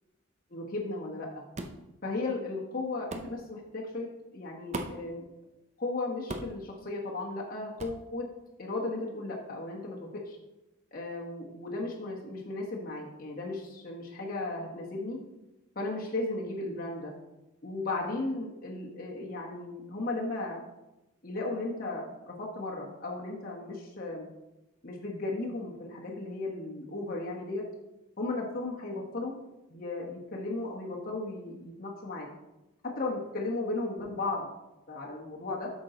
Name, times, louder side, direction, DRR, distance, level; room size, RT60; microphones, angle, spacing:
voice 1, 0.5-1.4 2.0-4.1 4.3-5.2 5.8-8.3 8.6-10.4 10.9-15.2 15.7-17.1 17.6-20.6 21.2-24.3 24.8-27.6 28.2-29.3 29.7-32.3 32.8-34.5 34.9-35.7, left 2 dB, 40° left, -4 dB, 1.3 m, -35 dB
sound 1, 1.6-1.8 3.1-3.3 4.7-5.1 6.3-6.6 7.8-8.0, right 2 dB, 30° right, 0.6 m, -37 dB
8.6 x 6.2 x 3.9 m, 0.97 s
head